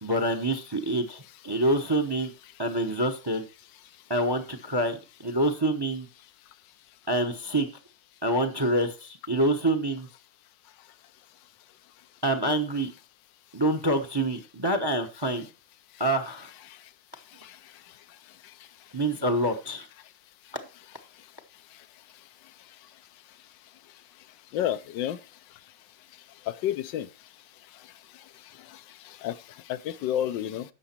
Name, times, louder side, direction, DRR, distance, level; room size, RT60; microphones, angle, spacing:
voice 1, 0.0-2.3 2.6-3.4 4.1-6.1 7.1-7.7 8.2-10.1 12.2-12.9 13.5-15.5 16.0-16.5 18.9-19.9, right 1 dB, 20° right, 0.6 m, -26 dB
voice 2, 24.5-25.2 26.6-27.1 29.2-29.3 29.7-30.6, left 11 dB, 85° left, 1.3 m, -29 dB
11.0 x 7.0 x 4.4 m
omnidirectional pair, 1.9 m